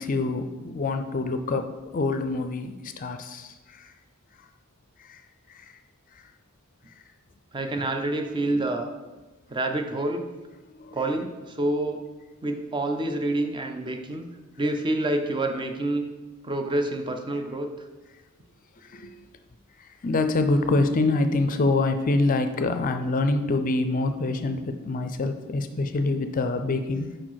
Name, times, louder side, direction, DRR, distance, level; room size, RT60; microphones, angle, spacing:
voice 1, 0.0-3.9 5.1-5.2 5.5-5.7 8.5-8.6 10.8-11.0 18.8-19.1 20.0-27.1, left 2 dB, 40° left, 8 dB, 0.5 m, -26 dB
voice 2, 7.5-8.9 9.5-10.3 10.9-12.0 12.4-14.3 14.6-16.1 16.4-17.7, right 2 dB, 20° right, 5 dB, 0.6 m, -27 dB
5.0 x 4.9 x 5.7 m, 1.2 s
head